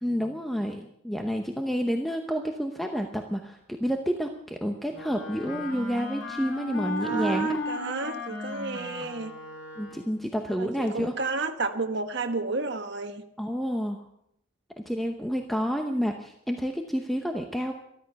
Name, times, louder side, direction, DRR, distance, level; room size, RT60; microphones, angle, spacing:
voice 1, 0.0-7.6 9.8-11.1 13.4-14.0 14.9-17.7, equal, ahead, 3 dB, 0.8 m, -29 dB
Wind instrument woodwind instrument, 4.9-10.3, right 1 dB, 55° left, 2.6 m, -34 dB
voice 2, 7.0-9.3 10.5-13.2, right 3 dB, 50° right, 6 dB, 1.3 m, -32 dB
13.5 x 13.0 x 6.9 m, 0.76 s
head